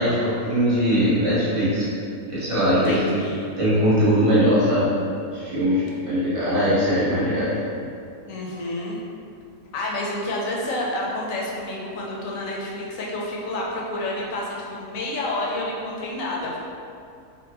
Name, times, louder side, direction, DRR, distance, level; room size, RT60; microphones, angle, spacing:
voice 1, 0.0-1.8 2.3-3.0 3.6-4.9 5.3-7.6, equal, 35° right, -10 dB, 0.6 m, -20 dB
voice 2, 2.8-3.5 8.3-9.0 9.7-16.6, left 1 dB, 70° left, -4 dB, 0.9 m, -29 dB
3.8 x 2.1 x 2.8 m, 2.4 s
omnidirectional pair, 1.6 m